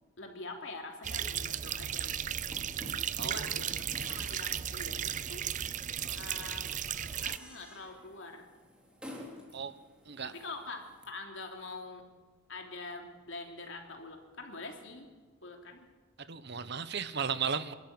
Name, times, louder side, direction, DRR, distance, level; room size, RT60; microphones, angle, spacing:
voice 1, 0.0-2.4 3.2-5.5 6.1-6.7 7.2-8.5 10.2-12.1 12.5-15.1 15.4-15.8, left 3 dB, 70° left, 3 dB, 3.3 m, -45 dB
sound 1, 1.0-7.4, right 9 dB, 40° right, 0.6 m, -35 dB
sound 2, 1.2-11.0, left 1 dB, 5° right, 3.4 m, -52 dB
voice 2, 3.2-4.2 6.0-6.2 9.5-9.7 10.0-10.3 16.2-17.7, right 6 dB, 60° right, 13 dB, 1.1 m, -36 dB
26.5 x 12.5 x 9.6 m, 1.4 s
head